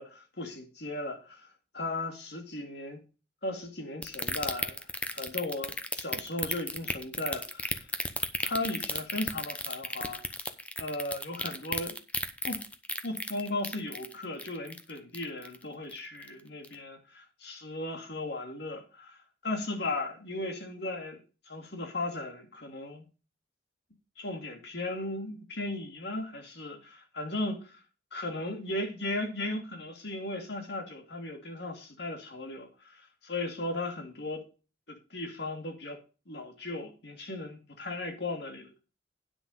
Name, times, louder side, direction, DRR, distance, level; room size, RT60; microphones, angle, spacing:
voice 1, 0.0-1.5 1.7-3.0 3.4-4.8 5.1-7.9 8.4-10.2 10.8-11.9 12.4-12.6 13.0-19.2 19.4-21.2 21.5-23.0 24.2-27.8 28.1-34.4 34.9-36.0 36.3-38.8, left 2 dB, 65° left, 2.5 m, -36 dB
sound 1, 4.0-15.6 15.9-16.3 16.6-16.7, left 2 dB, 5° left, 0.8 m, -33 dB
9.7 x 6.0 x 5.5 m
head